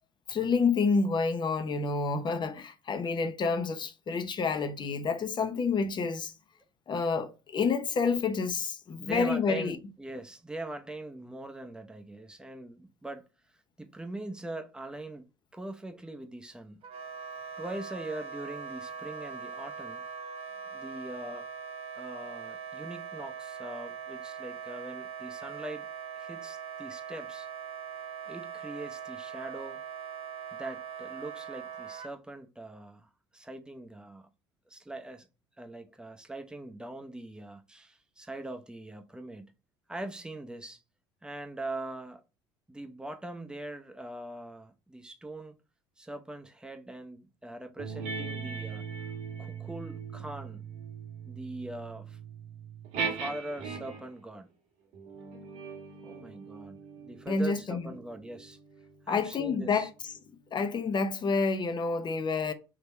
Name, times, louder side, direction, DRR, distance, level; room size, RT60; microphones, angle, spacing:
voice 1, 0.3-6.3 6.9-9.8 57.3-57.9 59.1-59.9 60.5-62.5, left 4 dB, 40° left, 0.8 m, -29 dB
voice 2, 9.0-13.2 13.8-15.3 15.5-16.8 17.6-20.0 20.7-21.4 21.9-25.9 26.2-27.5 28.3-29.8 30.5-34.3 34.7-35.3 35.6-39.5 39.9-40.8 41.2-42.2 42.7-45.5 46.0-48.9 49.4-50.6 51.3-52.2 53.0-54.5 56.0-58.6 59.1-59.9, right 2 dB, 5° right, 0.8 m, -42 dB
Wind instrument woodwind instrument, 16.8-32.1, right 6 dB, 50° right, 0.7 m, -41 dB
sound 1, 47.8-54.2 54.9-59.8, right 5 dB, 65° right, 1.6 m, -40 dB
3.7 x 2.9 x 4.4 m
hypercardioid pair, 70°, 12 cm